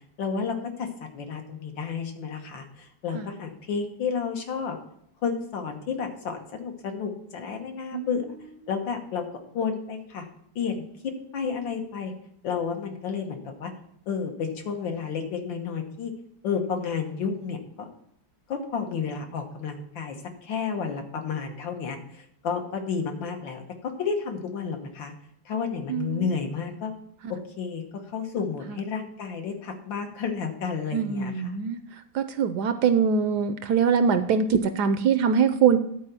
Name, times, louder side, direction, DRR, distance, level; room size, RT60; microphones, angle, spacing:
voice 1, 0.2-4.8 5.2-8.3 8.7-9.2 9.5-10.3 10.6-12.1 12.4-13.7 14.1-16.1 16.4-17.9 18.5-25.1 25.5-26.9 27.3-31.6, left 6 dB, 80° left, 3 dB, 1.9 m, -31 dB
voice 2, 25.9-26.2 30.9-31.8 32.1-35.8, right 6 dB, 70° right, 10 dB, 1.0 m, -23 dB
10.5 x 4.6 x 6.8 m, 0.72 s
omnidirectional pair, 2.1 m